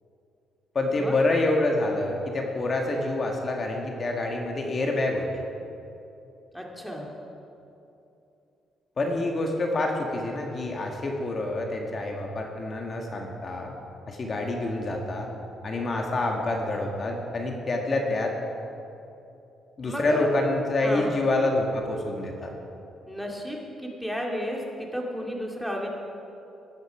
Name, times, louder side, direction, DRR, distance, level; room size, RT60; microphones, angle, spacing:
voice 1, 0.8-5.4 9.0-13.7 14.1-15.3 15.6-18.3 19.8-22.5, left 2 dB, 40° left, 1 dB, 1.8 m, -27 dB
voice 2, 6.5-7.1 19.8-20.3 20.8-21.2 23.1-25.9, equal, ahead, -1 dB, 2.4 m, -33 dB
16.0 x 10.5 x 4.9 m, 2.8 s
cardioid pair, 90°, 0 cm